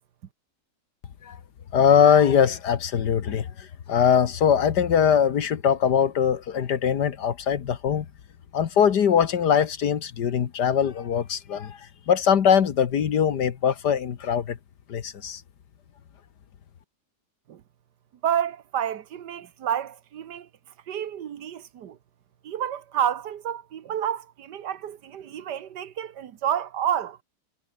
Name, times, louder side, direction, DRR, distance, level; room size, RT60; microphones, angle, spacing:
voice 1, 1.7-8.1 8.5-11.8 12.1-14.6 14.9-15.4, left 8 dB, 80° left, 1.9 m, -21 dB
voice 2, 18.2-20.5 20.9-22.0 22.4-27.2, right 9 dB, 85° right, 1.8 m, -29 dB
omnidirectional pair, 1.8 m